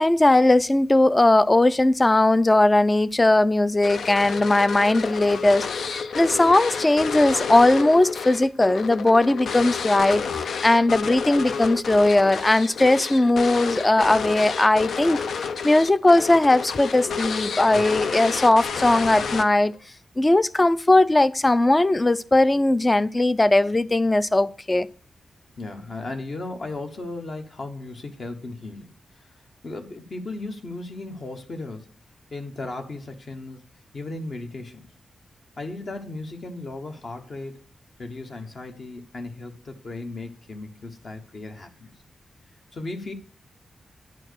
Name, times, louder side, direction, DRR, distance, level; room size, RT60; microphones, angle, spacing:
voice 1, 0.0-15.2 15.6-19.7 20.2-24.9, left 2 dB, 15° left, 0.4 m, -19 dB
sound 1, 3.8-19.8, left 6 dB, 80° left, 0.6 m, -30 dB
voice 2, 25.6-31.9 32.3-33.6 33.9-34.9 35.6-37.7 38.0-41.9 42.7-43.1, left 2 dB, 45° left, 1.2 m, -36 dB
10.5 x 4.5 x 6.4 m
wide cardioid pair, 160°, 0 cm